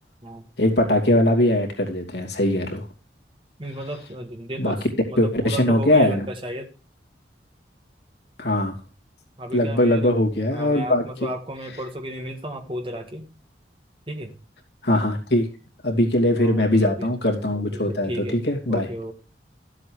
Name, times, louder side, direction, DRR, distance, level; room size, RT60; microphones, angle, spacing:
voice 1, 0.6-2.8 4.6-4.7 5.2-6.2 8.4-8.8 9.5-11.0 14.8-15.5 15.8-18.9, left 1 dB, 75° left, 1 dB, 2.7 m, -21 dB
voice 2, 3.6-6.7 9.4-10.1 10.5-13.3 14.1-14.3 16.3-17.2 17.7-19.1, right 1 dB, 30° right, 5 dB, 1.7 m, -34 dB
13.0 x 7.8 x 4.7 m, 0.33 s
head